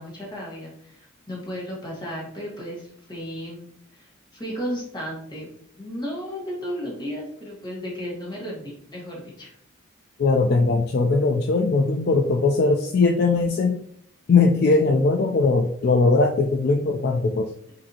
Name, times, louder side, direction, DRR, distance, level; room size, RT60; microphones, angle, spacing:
voice 1, 0.0-3.6 3.9-5.5 5.8-9.5, equal, 20° left, -3 dB, 1.2 m, -34 dB
voice 2, 10.2-13.8 14.3-17.5, left 3 dB, 50° left, 2 dB, 0.3 m, -20 dB
5.3 x 2.7 x 2.8 m, 0.65 s
head